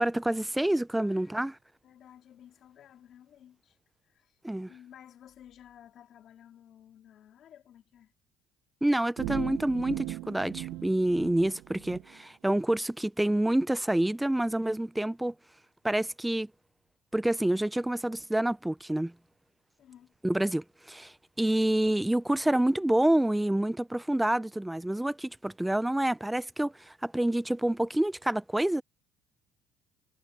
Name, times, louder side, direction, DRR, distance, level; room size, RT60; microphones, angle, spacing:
voice 1, 0.0-1.6 4.4-4.7 8.8-15.3 15.8-16.5 17.1-19.1 20.2-28.8, right 1 dB, 5° right, 0.6 m, -28 dB
voice 2, 0.9-1.4 1.8-3.8 4.0-4.4 4.7-8.1 19.8-20.1, left 10 dB, 50° left, 4.3 m, -54 dB
sound 1, 9.2-12.0, right 16 dB, 75° right, 1.9 m, -38 dB
cardioid pair, 125°, 0 cm